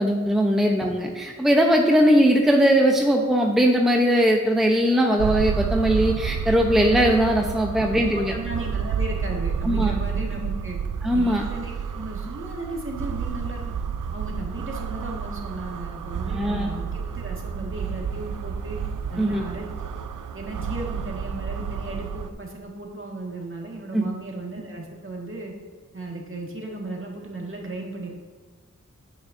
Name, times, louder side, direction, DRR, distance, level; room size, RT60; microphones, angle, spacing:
voice 1, 0.0-8.3 9.6-9.9 11.0-11.4 16.3-16.7 19.2-19.4 23.9-24.1, equal, ahead, 1 dB, 0.8 m, -20 dB
sound 1, 5.2-22.3, right 6 dB, 80° right, 0.5 m, -30 dB
voice 2, 7.8-10.8 11.1-13.8 14.1-18.8 19.1-19.7 19.9-20.0 20.3-25.5 25.9-28.1, right 2 dB, 40° right, -1 dB, 1.9 m, -35 dB
10.0 x 8.8 x 2.7 m, 1.4 s
wide cardioid pair, 65°, 31 cm